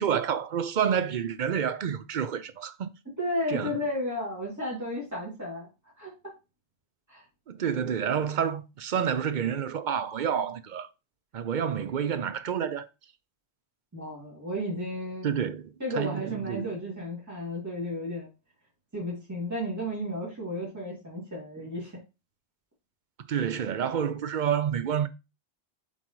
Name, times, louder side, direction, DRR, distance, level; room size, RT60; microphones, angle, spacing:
voice 1, 0.0-2.9 3.5-3.8 7.5-10.9 11.3-12.9 15.2-16.7 23.2-25.1, right 8 dB, 55° right, 0.6 m, -29 dB
voice 2, 3.2-5.7 6.0-6.1 7.1-7.2 13.9-15.3 15.8-18.3 18.9-22.0, equal, 15° right, 2.4 m, -33 dB
7.7 x 4.1 x 3.1 m
omnidirectional pair, 1.1 m